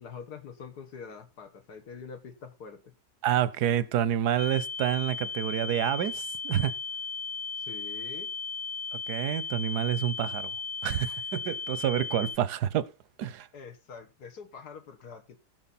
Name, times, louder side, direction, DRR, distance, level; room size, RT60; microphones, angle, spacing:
voice 1, 0.0-2.9 7.6-8.3 13.5-15.4, left 6 dB, 75° left, 2.0 m, -45 dB
voice 2, 3.2-6.7 8.9-10.5 10.8-12.9 13.2-13.5, right 11 dB, 90° right, 1.3 m, -28 dB
sound 1, 4.4-12.4, left 5 dB, 45° left, 0.5 m, -36 dB
15.5 x 6.3 x 4.2 m
omnidirectional pair, 1.7 m